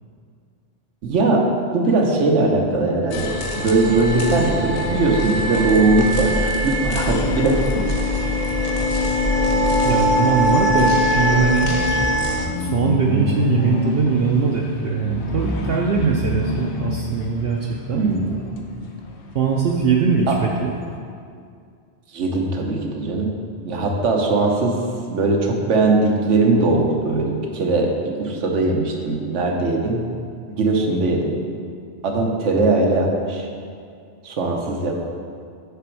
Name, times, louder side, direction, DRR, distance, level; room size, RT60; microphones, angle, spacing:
voice 1, 1.0-1.5 1.7-7.9 17.9-18.4 20.3-20.4 22.1-23.3 23.6-24.8 25.1-30.0 30.5-31.3 32.0-33.5 34.2-35.0, right 3 dB, 85° right, 1 dB, 1.2 m, -20 dB
sound 1, 3.1-12.5, left 1 dB, 40° left, 0.6 m, -21 dB
sound 2, 4.6-21.0, left 2 dB, 70° left, 1.0 m, -30 dB
voice 2, 9.8-11.7 12.6-18.0 19.3-20.7, right 5 dB, 65° right, -1 dB, 0.7 m, -21 dB
6.7 x 5.1 x 4.5 m, 2.3 s
omnidirectional pair, 1.2 m